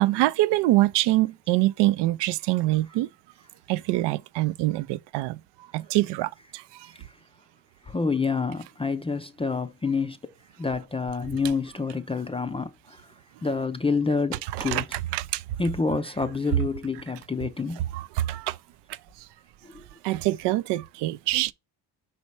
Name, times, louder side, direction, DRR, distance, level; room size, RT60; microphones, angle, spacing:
voice 1, 0.0-3.1 3.7-5.4 5.7-6.9 14.5-15.4 17.9-18.6 20.0-21.5, right 17 dB, 90° right, 0.5 m, -25 dB
voice 2, 7.9-10.2 10.6-13.0 13.4-14.9 15.6-17.8 19.6-19.8, left 4 dB, 15° left, 0.4 m, -28 dB
5.4 x 4.2 x 4.5 m
cardioid pair, 115°, 40 cm